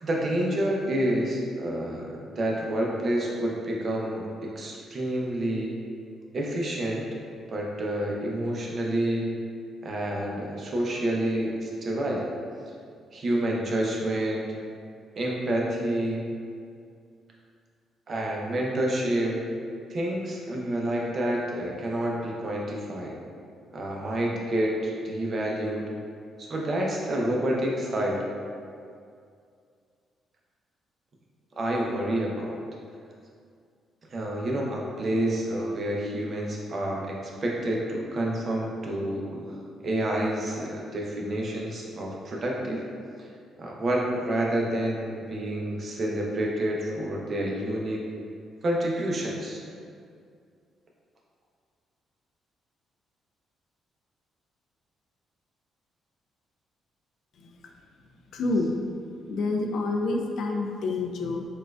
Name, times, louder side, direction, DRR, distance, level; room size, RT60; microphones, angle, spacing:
voice 1, 0.0-5.7 6.3-7.1 7.5-9.4 9.8-12.3 13.1-14.4 15.2-16.3 18.1-19.4 19.9-23.2 23.7-25.8 26.4-28.2 31.6-32.6 34.1-42.8 43.2-43.3 43.6-48.0 48.6-49.6, right 1 dB, 45° right, -2 dB, 0.6 m, -28 dB
voice 2, 58.3-58.7 59.3-61.5, left 3 dB, 70° left, 2 dB, 0.3 m, -28 dB
4.1 x 2.3 x 2.3 m, 2.3 s
cardioid pair, 90°, 0 cm